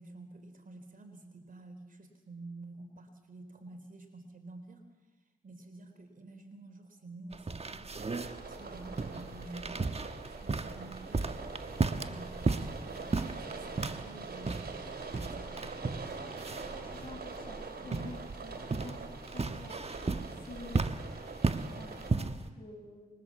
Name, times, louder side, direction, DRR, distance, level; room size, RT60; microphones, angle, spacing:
voice 1, 0.0-4.9 5.4-8.0 8.4-9.9 10.3-11.2 12.0-14.6 15.2-15.9, right 2 dB, 55° right, 6 dB, 3.7 m, -49 dB
sound 1, 7.3-22.5, right 3 dB, 40° right, 1.3 m, -35 dB
sound 2, 7.9-22.1, right 4 dB, 75° right, 3.9 m, -44 dB
voice 2, 16.5-19.9 20.4-20.9 21.7-23.1, left 3 dB, 35° left, 3 dB, 6.9 m, -49 dB
25.0 x 22.0 x 7.4 m, 1.2 s
cardioid pair, 45°, 16 cm